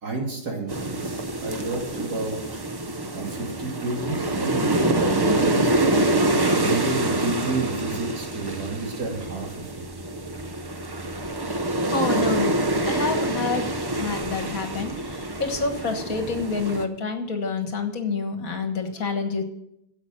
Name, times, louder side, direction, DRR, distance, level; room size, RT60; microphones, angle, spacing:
voice 1, 0.0-2.4 3.1-5.7 6.0-9.5, right 2 dB, 75° right, -1 dB, 3.3 m, -30 dB
sound 1, 0.7-16.8, right 2 dB, 25° right, 0.5 m, -26 dB
voice 2, 11.9-12.6 12.9-19.4, left 4 dB, 60° left, 6 dB, 1.8 m, -28 dB
10.5 x 7.9 x 7.6 m, 0.80 s
omnidirectional pair, 1.7 m